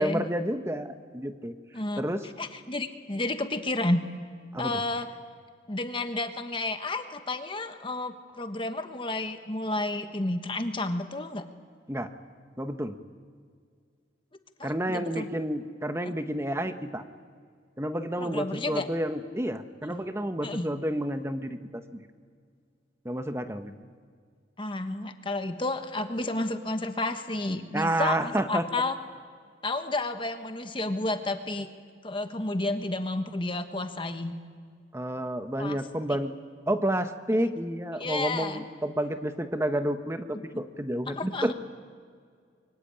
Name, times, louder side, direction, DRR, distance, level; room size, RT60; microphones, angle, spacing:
voice 1, 0.0-1.5 2.0-2.2 4.5-4.8 11.9-12.1 12.6-13.0 14.6-17.0 17.8-21.8 23.0-23.7 27.7-28.6 34.9-36.3 36.7-41.5, right 1 dB, 15° right, 8 dB, 1.1 m, -30 dB
voice 2, 2.4-4.0 4.6-5.1 5.7-11.4 14.6-15.3 16.1-16.2 18.2-18.9 19.9-20.0 20.4-20.7 24.6-28.9 29.6-31.7 32.0-34.3 35.6-35.8 38.0-38.6 41.1-41.5, left 2 dB, 25° left, 7 dB, 1.3 m, -31 dB
25.5 x 24.0 x 9.0 m, 2.1 s
head